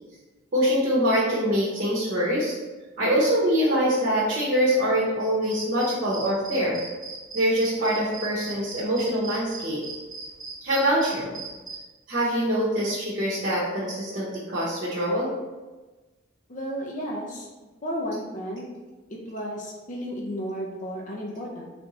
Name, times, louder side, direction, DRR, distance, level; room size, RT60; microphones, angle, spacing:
voice 1, 0.5-2.6 3.0-6.8 7.3-9.8 10.6-11.4 12.1-15.3, equal, 50° right, -7 dB, 0.9 m, -24 dB
sound 1, 5.5-11.8, right 4 dB, 20° right, 1.1 m, -38 dB
voice 2, 16.5-17.5 17.8-18.8 19.3-21.6, equal, 40° left, -2 dB, 0.5 m, -33 dB
3.4 x 2.6 x 4.0 m, 1.2 s
head